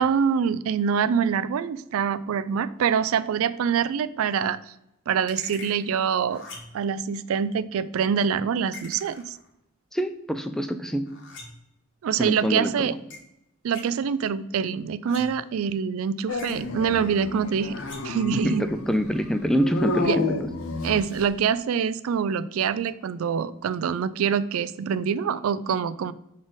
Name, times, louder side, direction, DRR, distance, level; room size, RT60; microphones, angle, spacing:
voice 1, 0.0-4.6 5.1-6.4 6.7-9.4 12.0-12.9 13.6-17.8 18.0-18.6 20.0-20.2 20.8-26.1, right 7 dB, 75° right, 16 dB, 0.3 m, -25 dB
sound 1, 5.3-5.8 6.3-6.9 8.7-9.5 11.1-11.7 13.1-13.2 13.7-13.9 15.1-15.5 16.4-16.8 17.7-18.2, left 3 dB, 55° left, 1.6 m, -43 dB
voice 2, 9.9-11.1 12.2-12.9 18.3-20.3, equal, ahead, 9 dB, 0.3 m, -25 dB
Dog, 16.3-21.4, left 3 dB, 80° left, 0.7 m, -31 dB
6.3 x 4.0 x 3.9 m, 0.83 s
head